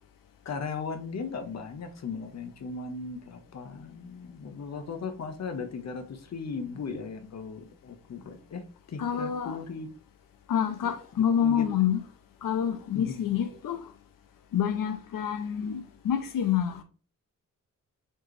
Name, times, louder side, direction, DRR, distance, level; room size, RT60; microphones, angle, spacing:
voice 1, 0.4-9.9 10.8-10.9 11.4-11.8 12.9-13.2, left 4 dB, 55° left, 0.7 m, -37 dB
voice 2, 9.0-9.6 10.5-12.0 12.4-13.9 14.5-16.8, left 9 dB, 85° left, 0.6 m, -27 dB
4.4 x 2.9 x 3.1 m
wide cardioid pair, 140°, 32 cm